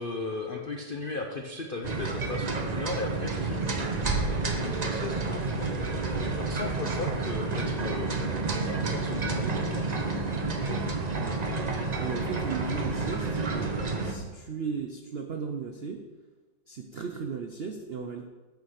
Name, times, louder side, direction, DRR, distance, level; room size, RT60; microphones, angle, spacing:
voice 1, 0.0-5.7 6.2-10.0 10.7-10.9, left 3 dB, 80° left, 3 dB, 0.4 m, -37 dB
sound 1, 1.8-14.1, right 3 dB, 40° right, 0.6 m, -30 dB
voice 2, 12.0-16.0 16.7-18.2, right 5 dB, 90° right, 3 dB, 0.5 m, -36 dB
8.2 x 5.8 x 6.5 m, 1.2 s
omnidirectional pair, 2.0 m